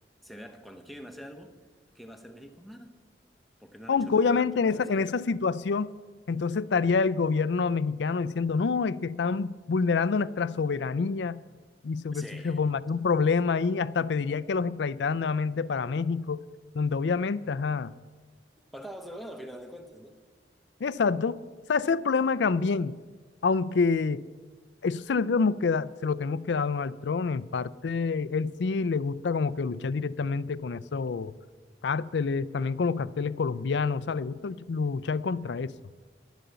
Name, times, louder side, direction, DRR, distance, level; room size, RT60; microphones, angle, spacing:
voice 1, 0.2-1.5 1.9-3.0 3.6-5.1 12.1-12.6 18.7-20.1, equal, ahead, 1.0 m, -44 dB
voice 2, 3.9-5.9 6.3-11.4 11.8-16.4 16.7-17.9 20.8-21.4 21.7-23.0 23.4-24.3 24.8-31.3 31.8-35.7, left 4 dB, 75° left, 0.4 m, -27 dB
11.5 x 11.5 x 6.9 m
head